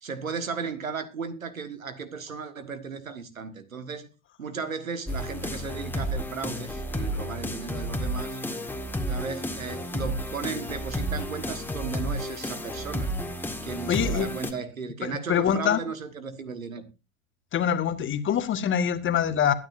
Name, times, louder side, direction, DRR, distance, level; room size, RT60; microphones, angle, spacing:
voice 1, 0.0-4.1 4.4-8.4 9.1-13.1 13.6-16.9, right 5 dB, 85° right, 1.7 m, -35 dB
sound 1, 5.1-14.5, equal, 5° left, 1.9 m, -32 dB
voice 2, 13.9-14.3 15.0-15.8 17.5-19.5, left 8 dB, 30° left, 1.6 m, -24 dB
21.5 x 9.6 x 2.6 m
figure-of-eight pair, 80°, 40 cm